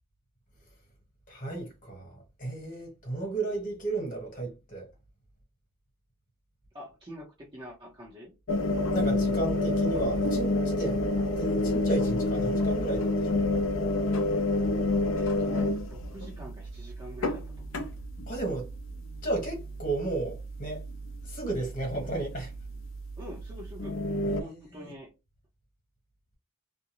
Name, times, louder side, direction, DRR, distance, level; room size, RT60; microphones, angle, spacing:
voice 1, 1.3-4.9 8.9-11.0 11.4-13.6 18.3-18.7 19.2-20.8 21.2-22.5 24.2-24.9, right 2 dB, 40° left, 1.2 m, -33 dB
voice 2, 6.7-8.3 15.1-17.7 23.2-24.0 24.4-25.1, equal, 20° right, 0.7 m, -46 dB
sound 1, 8.5-24.4, left 2 dB, 60° left, 0.5 m, -29 dB
2.5 x 2.2 x 2.9 m
head